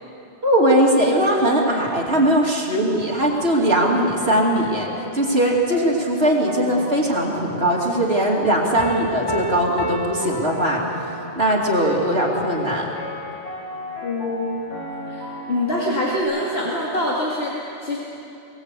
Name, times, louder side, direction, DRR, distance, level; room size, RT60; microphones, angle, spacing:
voice 1, 0.4-4.9 5.1-10.8 11.4-12.9, right 1 dB, 65° right, -2 dB, 3.0 m, -20 dB
sound 1, 2.9-16.2, equal, 80° left, 5.1 m, -36 dB
Piano, 8.8-11.3, right 1 dB, 20° left, 1.6 m, -29 dB
voice 2, 14.0-14.5 15.1-18.0, left 1 dB, 60° left, -5 dB, 2.8 m, -25 dB
23.5 x 18.5 x 8.3 m, 2.9 s
omnidirectional pair, 1.2 m